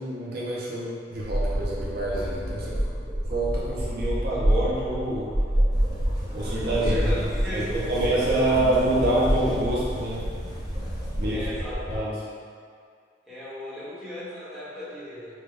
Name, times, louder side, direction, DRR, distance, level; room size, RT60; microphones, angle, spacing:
voice 1, 0.0-2.8 3.3-5.3 6.3-7.0 7.5-10.3 11.2-11.5 11.9-12.2, right 1 dB, 55° right, -6 dB, 0.7 m, -26 dB
sound 1, 1.1-12.0, equal, 20° right, 1.2 m, -28 dB
sound 2, 5.7-11.5, equal, 20° left, 0.7 m, -38 dB
voice 2, 6.8-8.6 11.3-11.8 13.3-15.4, left 1 dB, ahead, -11 dB, 1.1 m, -35 dB
5.6 x 2.3 x 3.3 m, 2.2 s
head